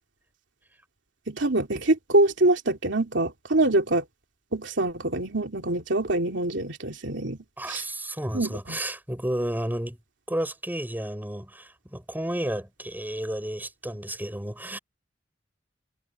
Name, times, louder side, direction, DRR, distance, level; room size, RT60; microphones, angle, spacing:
voice 1, 1.3-4.0 4.5-7.4 7.7-7.8 8.3-8.8, right 2 dB, 70° right, 3.1 m, -24 dB
voice 2, 7.6-10.0 10.3-14.8, right 1 dB, 10° right, 5.7 m, -32 dB
head